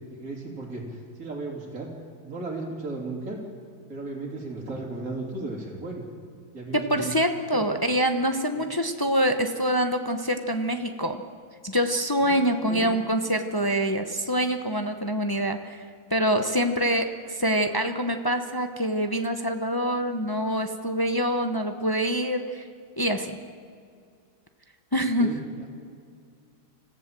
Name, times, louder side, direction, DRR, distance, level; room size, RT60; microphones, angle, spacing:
voice 1, 0.1-1.9 2.2-3.4 3.9-6.0 6.5-7.1 8.5-8.7 12.2-12.9 25.2-25.8, right 2 dB, 45° right, -4 dB, 3.5 m, -35 dB
voice 2, 6.7-11.2 11.6-15.8 16.1-22.6 23.0-23.4 24.9-25.3, equal, 25° left, 6 dB, 0.5 m, -25 dB
25.5 x 15.0 x 7.6 m, 2.2 s
omnidirectional pair, 2.2 m